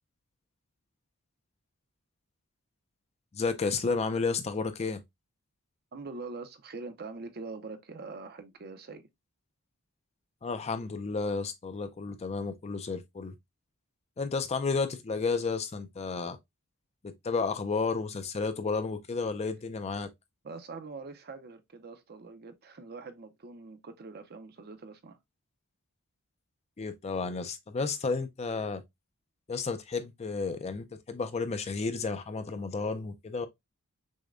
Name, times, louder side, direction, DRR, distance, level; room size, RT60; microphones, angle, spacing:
voice 1, 3.3-5.0 10.4-13.3 14.2-16.4 17.0-20.1 26.8-28.8 29.5-33.5, left 4 dB, 30° left, 0.4 m, -32 dB
voice 2, 5.9-9.1 20.4-25.2, right 3 dB, 45° right, 0.6 m, -43 dB
6.2 x 2.2 x 2.4 m
head